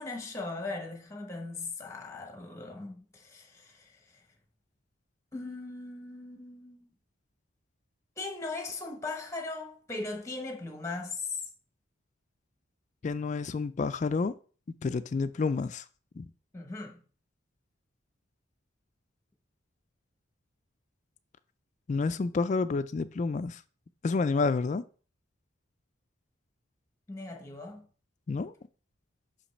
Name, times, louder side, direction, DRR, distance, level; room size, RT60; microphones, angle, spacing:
voice 1, 0.0-4.2 5.3-6.9 8.2-11.4 16.5-17.0 27.1-27.9, left 3 dB, 15° left, 0.9 m, -39 dB
voice 2, 13.0-14.3 14.8-15.8 16.2-16.3 21.9-23.6 24.0-24.8 28.3-28.5, left 4 dB, 35° left, 0.3 m, -29 dB
5.8 x 5.1 x 3.2 m
head